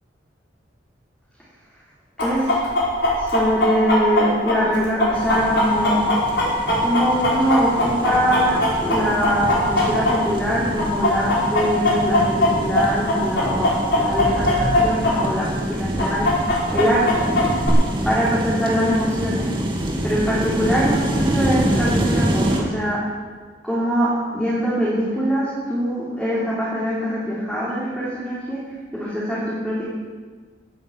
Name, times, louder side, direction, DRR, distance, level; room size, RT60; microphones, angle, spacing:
Chicken rooster, 2.2-10.5 10.8-15.1 15.4-15.5 16.0-17.7, left 2 dB, 65° left, 5.2 m, -20 dB
voice 1, 3.2-6.0 6.8-16.3 16.7-17.4 18.0-19.5 20.0-23.0 23.6-28.6 28.9-29.8, equal, 5° left, -9 dB, 3.8 m, -23 dB
sound 1, 5.1-22.6, right 1 dB, 25° right, 2.3 m, -26 dB
18.0 x 9.4 x 7.5 m, 1.5 s
head